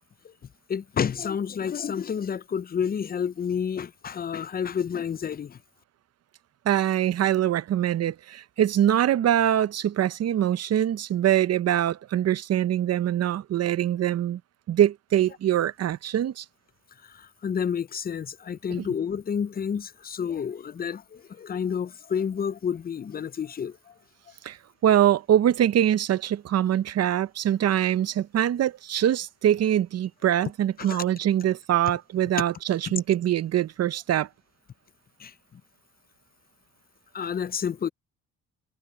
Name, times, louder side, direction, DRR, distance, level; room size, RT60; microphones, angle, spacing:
voice 1, 0.7-5.6 17.0-23.9 30.8-31.0 32.8-32.9 35.2-35.6 37.1-37.9, left 7 dB, 30° left, 0.5 m, -30 dB
voice 2, 6.7-14.4 14.7-16.4 24.4-24.6 24.8-34.3, right 11 dB, 55° right, 0.8 m, -23 dB
cardioid pair, 90°, 30 cm